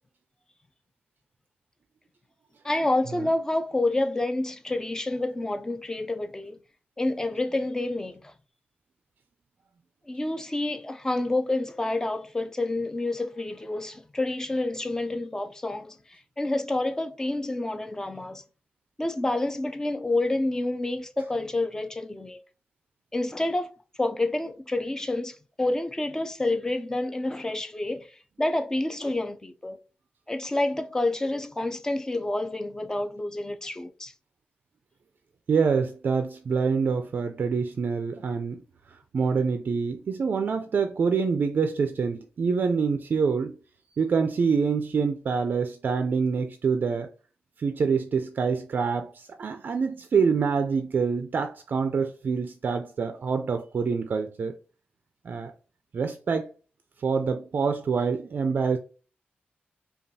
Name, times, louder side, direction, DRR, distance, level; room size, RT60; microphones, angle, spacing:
voice 1, 2.6-6.6 7.0-8.3 10.1-18.4 19.0-22.4 23.1-28.1 28.4-29.8 30.3-34.1, left 2 dB, 15° left, 0.4 m, -28 dB
voice 2, 35.5-38.6 38.9-43.6 44.0-47.1 47.6-54.6 55.2-55.5 55.9-56.5 57.0-58.8, right 5 dB, 55° right, 0.4 m, -26 dB
5.2 x 2.3 x 2.7 m
wide cardioid pair, 140°, 4 cm